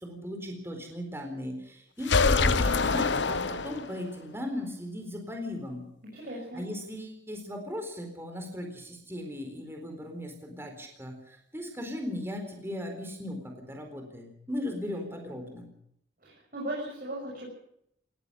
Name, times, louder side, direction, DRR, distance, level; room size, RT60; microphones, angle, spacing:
voice 1, 0.0-5.8 6.5-15.7, left 1 dB, 15° right, 3 dB, 4.1 m, -37 dB
sound 1, 2.0-4.1, left 4 dB, 80° left, 0.9 m, -25 dB
voice 2, 6.1-6.6 16.2-17.5, right 1 dB, 55° right, -4 dB, 6.6 m, -37 dB
19.0 x 14.5 x 9.7 m, 0.73 s
head